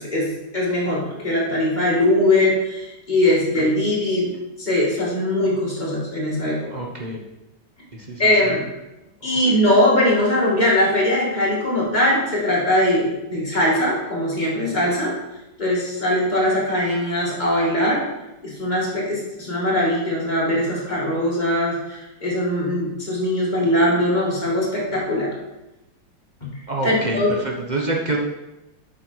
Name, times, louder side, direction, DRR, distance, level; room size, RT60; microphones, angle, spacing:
voice 1, 0.0-6.6 8.2-8.6 9.2-15.1 15.6-18.0 18.4-25.3 26.8-27.4, left 1 dB, 20° left, -6 dB, 2.4 m, -21 dB
voice 2, 6.7-7.2 8.0-8.5 26.7-28.2, right 2 dB, 35° right, -1 dB, 0.7 m, -27 dB
8.1 x 6.4 x 4.6 m, 0.97 s
omnidirectional pair, 2.1 m